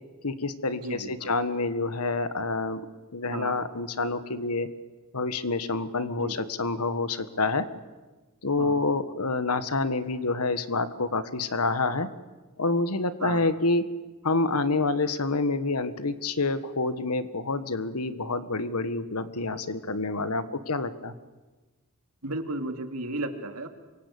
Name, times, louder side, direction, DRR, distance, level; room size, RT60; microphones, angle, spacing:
voice 1, 0.2-2.8 3.1-4.7 5.1-7.7 8.4-12.1 12.6-13.9 14.2-21.1, left 3 dB, 90° left, 12 dB, 1.6 m, -27 dB
voice 2, 0.7-1.4 3.3-3.6 6.2-6.4 8.6-8.8 13.2-13.4 22.2-23.7, right 2 dB, 85° right, 6 dB, 2.8 m, -34 dB
28.0 x 24.5 x 8.5 m, 1.2 s
head